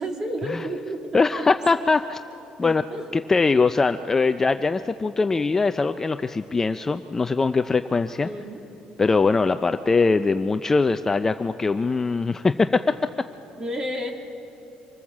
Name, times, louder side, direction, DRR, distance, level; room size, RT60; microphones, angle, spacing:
voice 1, 0.0-1.5 1.7-1.8 2.6-3.1 8.2-8.6 13.6-14.1, equal, 25° right, 2 dB, 2.6 m, -31 dB
voice 2, 1.1-2.2 2.6-2.8 3.1-8.3 9.0-12.9, left 4 dB, 20° left, 9 dB, 0.4 m, -22 dB
25.5 x 19.5 x 7.3 m, 2.9 s
cardioid pair, 140°, 2 cm